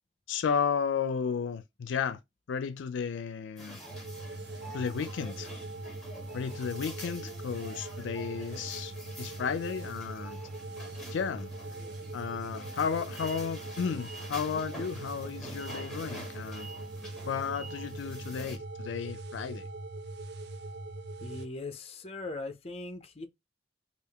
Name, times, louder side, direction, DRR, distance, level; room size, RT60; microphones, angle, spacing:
voice 1, 0.3-2.2 2.5-3.8 4.7-5.5 6.3-10.4 11.1-11.5 12.1-16.7 17.3-19.6, left 6 dB, 80° left, 0.4 m, -33 dB
sound 1, 3.6-18.6, equal, ahead, 1.7 m, -47 dB
sound 2, 3.9-21.5, right 2 dB, 60° right, 0.5 m, -41 dB
voice 2, 21.2-23.3, left 2 dB, 30° left, 0.5 m, -40 dB
3.5 x 2.5 x 3.3 m
head